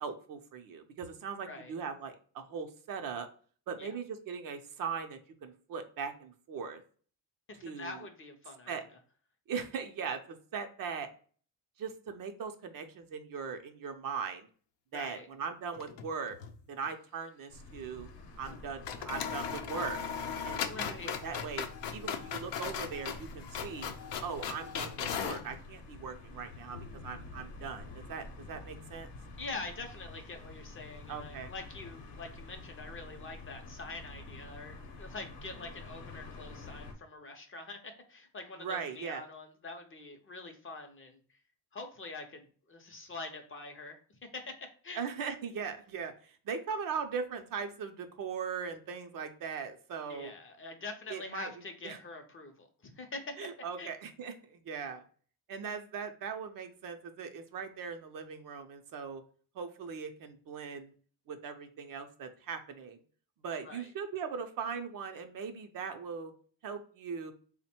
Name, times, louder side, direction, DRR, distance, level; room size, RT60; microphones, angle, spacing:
voice 1, 0.0-3.3 3.7-6.8 7.6-8.0 8.7-8.8 9.5-11.1 11.8-14.5 14.9-16.4 16.7-18.1 18.4-20.0 20.4-23.9 24.2-29.1 31.1-31.5 38.6-39.2 45.0-50.3 51.1-51.5 51.8-52.0 53.4-55.0 55.5-59.2 59.5-60.9 61.3-63.0 63.4-66.3 66.6-67.3, right 6 dB, 55° right, 7 dB, 0.6 m, -39 dB
voice 2, 7.5-8.7 14.9-15.3 20.7-21.1 29.4-41.2 41.7-45.0 50.1-53.5 53.8-53.9 63.6-63.9, left 3 dB, 30° left, 5 dB, 0.6 m, -45 dB
sound 1, 15.7-16.6 16.8-16.9 18.4-18.6 18.8-25.5, left 7 dB, 85° left, 0.6 m, -38 dB
sound 2, 17.5-36.9, left 3 dB, 55° left, 0.8 m, -49 dB
3.4 x 2.1 x 4.2 m, 0.43 s
cardioid pair, 130°, 42 cm